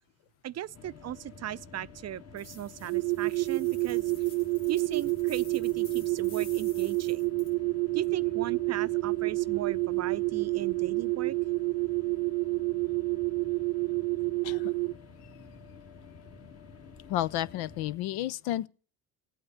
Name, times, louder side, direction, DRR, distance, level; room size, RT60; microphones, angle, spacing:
voice 1, 0.4-4.1 4.7-7.3 7.9-11.4, right 11 dB, 40° right, 0.6 m, -37 dB
sound 1, 0.7-18.0, left 5 dB, 35° left, 1.8 m, -50 dB
sound 2, 2.4-7.5, left 4 dB, 90° left, 2.3 m, -52 dB
sound 3, 2.9-14.9, right 25 dB, 80° right, 0.7 m, -29 dB
voice 2, 17.1-18.7, left 14 dB, 65° left, 0.6 m, -31 dB
16.5 x 8.7 x 8.0 m
hypercardioid pair, 60°, 41 cm